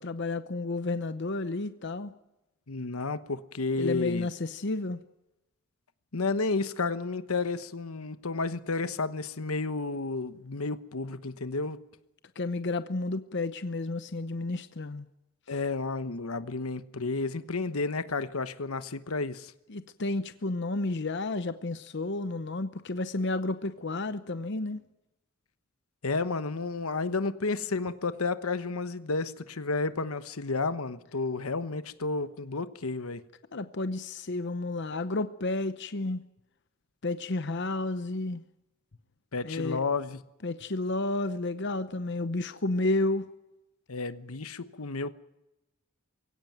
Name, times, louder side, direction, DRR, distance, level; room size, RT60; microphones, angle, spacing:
voice 1, 0.0-2.1 3.7-5.0 12.4-15.1 19.7-24.8 33.5-36.2 37.0-38.4 39.4-39.8 40.4-43.3, left 2 dB, 55° left, 0.9 m, -31 dB
voice 2, 2.7-4.3 6.1-11.8 15.5-19.5 26.0-33.2 39.3-40.2 43.9-45.1, left 3 dB, 85° left, 1.1 m, -31 dB
23.0 x 17.0 x 9.2 m
head